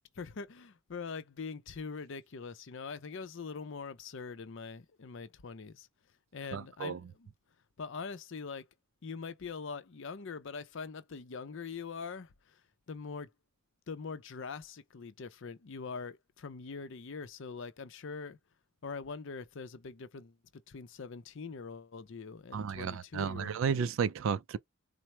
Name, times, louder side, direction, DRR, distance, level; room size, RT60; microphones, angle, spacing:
voice 1, 0.1-5.9 6.3-7.3 7.8-8.7 9.0-12.6 12.9-13.3 13.9-18.4 18.8-23.8, left 5 dB, 60° left, 0.5 m, -43 dB
voice 2, 6.5-7.0 22.5-24.6, right 6 dB, 60° right, 0.3 m, -33 dB
4.3 x 2.0 x 3.0 m
head